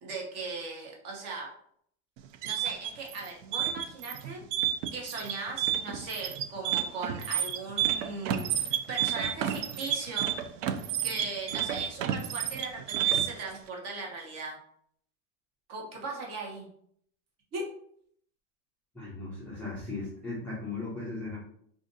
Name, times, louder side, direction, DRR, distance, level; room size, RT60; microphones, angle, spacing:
voice 1, 0.0-1.5 2.4-4.4 4.9-10.3 11.0-14.6 15.7-16.7 17.5-17.6, right 3 dB, 40° right, -1 dB, 1.0 m, -38 dB
sound 1, 2.2-13.5, right 10 dB, 70° right, 0.5 m, -30 dB
voice 2, 18.9-21.4, left 3 dB, 5° left, -9 dB, 0.3 m, -37 dB
2.5 x 2.5 x 3.9 m, 0.65 s
supercardioid pair, 155°, 39 cm